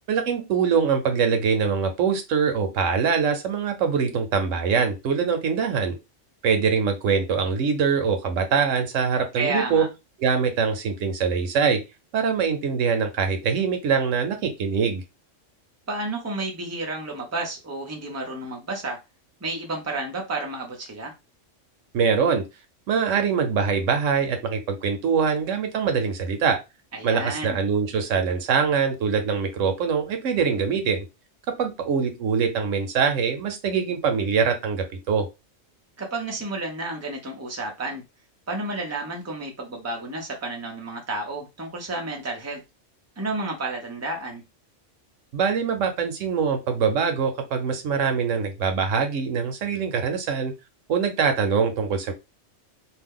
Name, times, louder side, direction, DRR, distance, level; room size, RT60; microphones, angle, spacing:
voice 1, 0.1-6.0 6.4-9.9 10.2-11.8 12.1-15.0 21.9-22.4 22.9-26.6 27.0-31.0 31.6-35.3 45.3-50.5 50.9-52.1, right 6 dB, 85° right, 1.1 m, -23 dB
voice 2, 9.4-9.9 15.9-19.0 19.4-21.1 26.9-27.6 36.0-38.0 38.5-42.6 43.2-44.4, right 2 dB, 15° right, 0.7 m, -31 dB
2.7 x 2.2 x 3.5 m
omnidirectional pair, 1.3 m